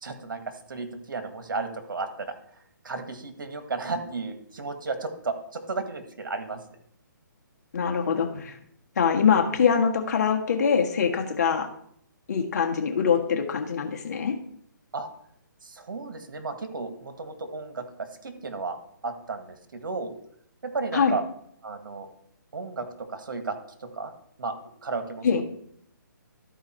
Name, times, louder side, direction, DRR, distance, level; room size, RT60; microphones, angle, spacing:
voice 1, 0.0-2.3 2.8-6.6 14.9-15.1 15.6-18.8 19.0-20.1 20.6-21.2 21.6-22.1 22.5-24.1 24.4-24.5 24.8-25.4, right 3 dB, 75° right, 7 dB, 1.7 m, -33 dB
voice 2, 7.7-8.6 9.0-11.7 12.3-14.3 20.9-21.1 25.2-25.4, left 6 dB, 50° left, 3 dB, 1.5 m, -23 dB
13.0 x 4.7 x 4.5 m, 0.67 s
hypercardioid pair, 155°, 11 cm